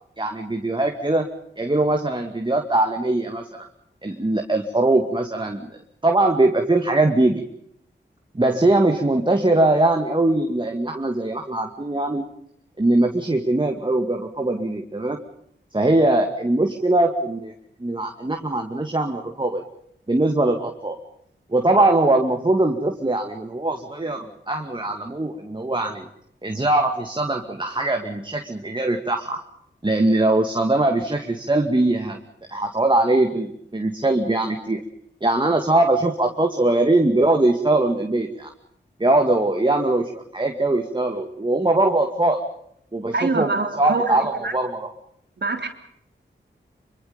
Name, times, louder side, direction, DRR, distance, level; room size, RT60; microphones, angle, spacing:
voice 1, 0.2-1.3 1.6-3.7 4.0-5.7 6.0-7.4 8.3-12.3 12.8-15.2 15.7-17.5 17.8-19.6 20.1-21.0 21.5-26.1 26.4-29.4 29.8-32.2 32.5-34.8 35.2-38.5 39.0-42.4 42.9-43.5 43.8-44.9, right 2 dB, 25° right, 4 dB, 2.3 m, -21 dB
voice 2, 43.1-44.5 45.4-45.7, right 3 dB, 60° right, 5 dB, 3.5 m, -25 dB
25.5 x 24.5 x 5.3 m, 0.71 s
wide cardioid pair, 60°, 20 cm